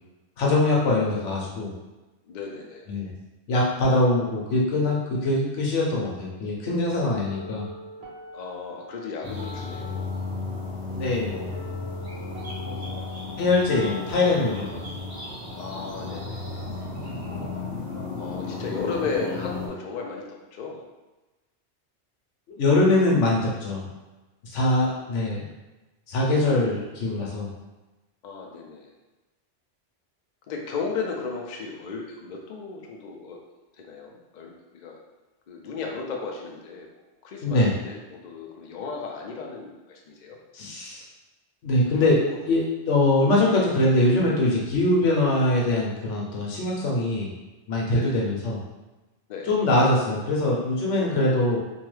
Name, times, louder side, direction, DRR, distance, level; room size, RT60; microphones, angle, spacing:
voice 1, 0.4-1.7 2.9-3.1 3.5-7.7 10.9-11.5 13.4-14.9 22.6-23.9 24.4-25.5 26.1-27.5 37.4-37.7 40.5-41.0 41.6-47.3 47.7-48.6 49.5-51.6, left 2 dB, 80° left, -3 dB, 1.1 m, -23 dB
voice 2, 2.2-2.9 8.3-10.0 12.6-13.2 15.6-16.8 18.2-20.8 24.6-25.0 28.2-28.9 30.5-33.4 33.8-35.0 35.5-40.4 47.9-48.2 49.3-49.5, left 4 dB, 60° left, 0 dB, 0.5 m, -35 dB
sound 1, 7.2-17.2, left 1 dB, 65° right, 1.0 m, -44 dB
sound 2, 9.2-19.7, left 3 dB, 5° left, 1.4 m, -34 dB
3.0 x 2.3 x 3.1 m, 1.1 s
omnidirectional pair, 1.2 m